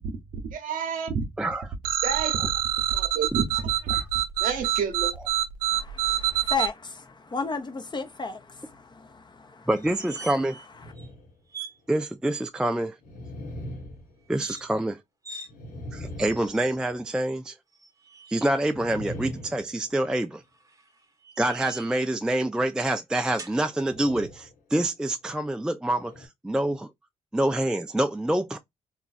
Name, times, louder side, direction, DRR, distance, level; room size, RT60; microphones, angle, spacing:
voice 1, 0.5-1.2 2.0-2.4 2.9-3.9 4.4-5.1, right 6 dB, 70° right, 0.7 m, -29 dB
voice 2, 1.4-1.7 3.9-4.1 9.7-10.6 11.9-13.0 14.3-15.0 15.9-17.5 18.3-20.4 21.4-26.9 27.3-28.6, right 1 dB, 5° right, 0.3 m, -26 dB
sound 1, 1.8-6.7, right 13 dB, 90° right, 0.4 m, -26 dB
voice 3, 5.7-9.7, left 4 dB, 30° left, 0.8 m, -34 dB
sound 2, 9.8-10.7 11.0-11.1 11.5-11.8 14.2-14.6 15.2-15.5 16.2-16.8 17.7-18.5 20.4-22.0 23.4-23.6, right 3 dB, 25° right, 0.8 m, -43 dB
sound 3, 10.7-11.4 11.9-12.0 13.0-14.8 15.5-17.2 18.7-20.4 23.7-24.6 25.0-25.2 25.9-26.3, equal, 80° left, 1.2 m, -41 dB
3.0 x 2.4 x 2.4 m
supercardioid pair, 55°, 15 cm